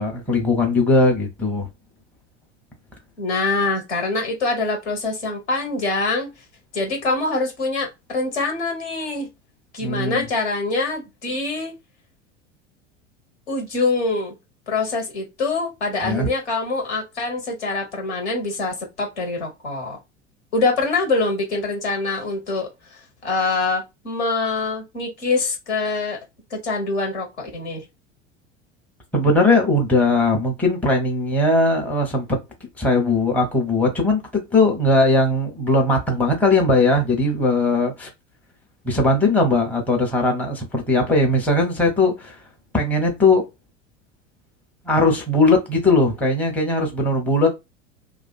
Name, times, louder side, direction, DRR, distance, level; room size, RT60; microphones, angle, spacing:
voice 1, 0.0-1.7 9.8-10.2 16.0-16.3 29.1-32.4 32.8-38.1 38.8-42.4 42.7-43.5 44.9-47.5, left 2 dB, 5° left, 0.7 m, -19 dB
voice 2, 3.2-6.3 6.7-9.3 9.7-11.7 13.5-14.3 14.7-20.0 20.5-22.7 23.2-26.2 26.5-27.8, left 3 dB, 65° left, 1.2 m, -24 dB
2.4 x 2.4 x 2.2 m
figure-of-eight pair, 80°, 36 cm